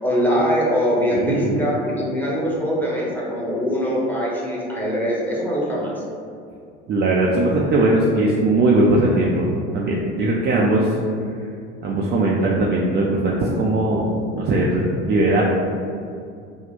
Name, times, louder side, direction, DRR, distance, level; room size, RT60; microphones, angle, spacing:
voice 1, 0.0-5.9, equal, 5° left, -5 dB, 0.9 m, -22 dB
voice 2, 1.1-1.6 6.9-9.5 9.7-11.0 11.8-15.4, right 2 dB, 30° right, -3 dB, 0.4 m, -19 dB
2.8 x 2.1 x 4.0 m, 2.3 s
hypercardioid pair, 75°, 33 cm